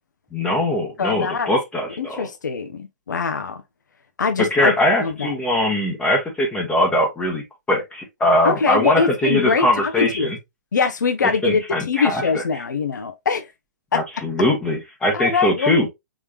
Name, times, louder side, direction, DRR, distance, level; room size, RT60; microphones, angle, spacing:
voice 1, 0.3-2.3 4.5-7.4 7.7-10.4 11.4-12.4 13.9-15.9, left 1 dB, 10° left, 1.0 m, -21 dB
voice 2, 1.0-1.5 2.0-3.6 4.2-4.7 5.0-5.3 8.4-10.3 10.7-13.5 13.9-14.0 15.1-15.8, left 5 dB, 80° left, 0.7 m, -22 dB
3.7 x 3.1 x 2.3 m
hypercardioid pair, 130°, 10 cm